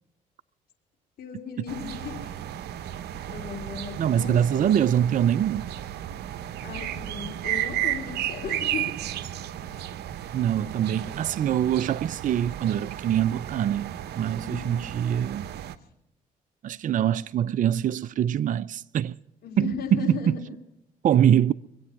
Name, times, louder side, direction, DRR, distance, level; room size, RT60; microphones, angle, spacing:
voice 1, 1.2-2.3 3.2-5.2 6.6-8.9 14.4-14.9 19.4-20.6, left 7 dB, 60° left, 3.3 m, -37 dB
sound 1, 1.7-15.8, right 12 dB, 70° right, 0.8 m, -34 dB
voice 2, 4.0-5.7 10.3-15.5 16.6-19.2 19.6-20.4 21.0-21.5, right 10 dB, 50° right, 0.5 m, -24 dB
25.0 x 8.5 x 5.9 m
supercardioid pair, 60°, 18 cm